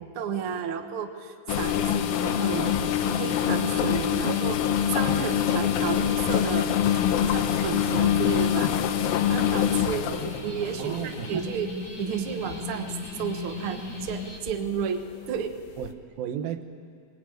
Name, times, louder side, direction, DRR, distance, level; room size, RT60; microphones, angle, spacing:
voice 1, 0.0-6.7 7.1-8.7 9.3-15.6, right 7 dB, 55° right, 6 dB, 1.5 m, -32 dB
sound 1, 1.5-11.7 12.3-12.6 13.1-13.3 14.1-14.5 14.8-14.9 15.8-15.9, left 10 dB, 80° left, 2.7 m, -25 dB
sound 2, 1.6-14.4, left 3 dB, 30° left, 3.0 m, -37 dB
voice 2, 10.8-11.5 15.8-16.6, right 10 dB, 80° right, 7 dB, 2.9 m, -34 dB
22.5 x 20.5 x 9.1 m, 2.3 s
omnidirectional pair, 4.2 m